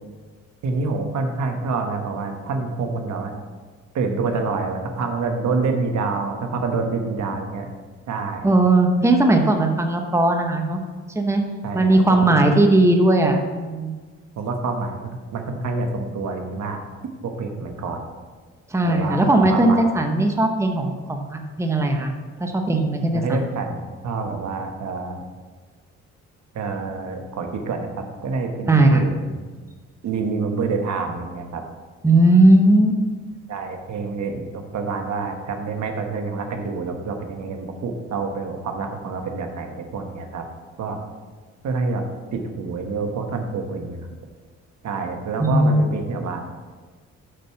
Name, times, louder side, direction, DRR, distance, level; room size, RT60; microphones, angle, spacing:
voice 1, 0.6-3.3 3.9-7.7 8.1-8.5 11.6-12.6 14.4-16.8 17.2-18.0 18.8-19.9 23.1-25.2 26.5-29.4 30.0-31.6 33.5-40.4 40.8-41.0 41.6-42.0 42.3-44.1 44.8-46.4, right 4 dB, 65° right, 4 dB, 1.3 m, -27 dB
voice 2, 8.4-10.8 11.1-11.4 11.7-13.9 18.7-22.1 22.4-23.4 28.6-29.0 32.0-33.0 45.4-45.8, right 2 dB, 10° right, 3 dB, 0.9 m, -18 dB
6.6 x 6.2 x 5.7 m, 1.4 s
cardioid pair, 90°, 30 cm